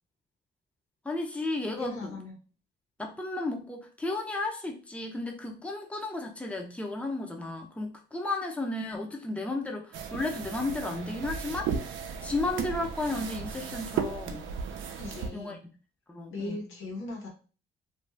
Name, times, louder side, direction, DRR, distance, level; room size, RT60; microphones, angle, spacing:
voice 1, 1.0-1.9 3.0-11.7 12.2-14.5 15.3-15.6 16.1-16.6, left 2 dB, 5° left, 2 dB, 0.6 m, -33 dB
voice 2, 1.8-2.4 15.0-15.6 16.3-17.3, left 2 dB, 90° left, -1 dB, 1.1 m, -38 dB
sound 1, 9.9-15.3, right 6 dB, 75° right, 0.5 m, -35 dB
2.6 x 2.3 x 3.2 m, 0.36 s
cardioid pair, 90°, 20 cm